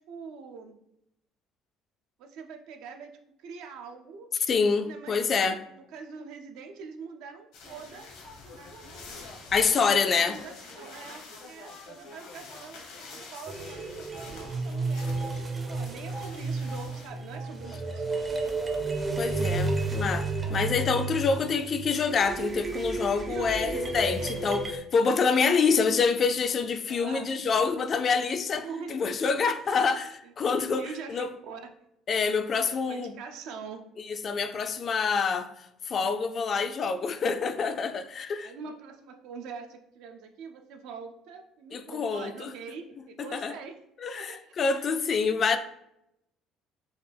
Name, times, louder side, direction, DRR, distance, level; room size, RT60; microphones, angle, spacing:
voice 1, 0.1-0.8 2.2-3.1 3.4-4.3 4.8-8.1 8.5-9.0 10.0-18.3 20.7-20.8 21.4-21.7 23.3-24.4 25.3-25.7 26.9-27.3 28.6-29.0 29.5-29.9 30.2-30.3 30.7-31.7 32.6-33.8 38.4-43.8 44.1-44.9, right 5 dB, 80° right, 0.5 m, -44 dB
voice 2, 4.5-5.6 9.5-10.4 19.2-24.6 24.9-31.3 32.1-33.1 34.2-35.5 35.9-38.5 41.7-42.5 43.2-43.5 44.0-45.6, left 5 dB, 40° left, 0.3 m, -26 dB
sound 1, 7.5-17.1, left 3 dB, 80° left, 1.1 m, -48 dB
sound 2, 7.6-13.3 14.5-21.7, left 2 dB, 65° left, 0.8 m, -52 dB
sound 3, 13.5-24.8, right 2 dB, 25° right, 0.5 m, -32 dB
4.0 x 2.3 x 3.3 m
cardioid pair, 110°, 0 cm